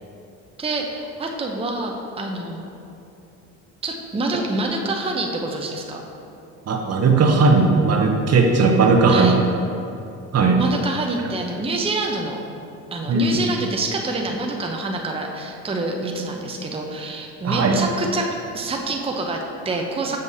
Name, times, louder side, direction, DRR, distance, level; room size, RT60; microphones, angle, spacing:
voice 1, 0.6-2.7 3.8-6.0 9.1-9.3 10.6-12.4 12.9-20.2, right 2 dB, 15° right, 1 dB, 0.7 m, -26 dB
voice 2, 6.7-9.3 10.3-10.6 13.1-13.4 17.4-17.8, right 4 dB, 45° right, 3 dB, 0.8 m, -17 dB
6.9 x 6.5 x 2.7 m, 2.7 s
supercardioid pair, 75°, 35 cm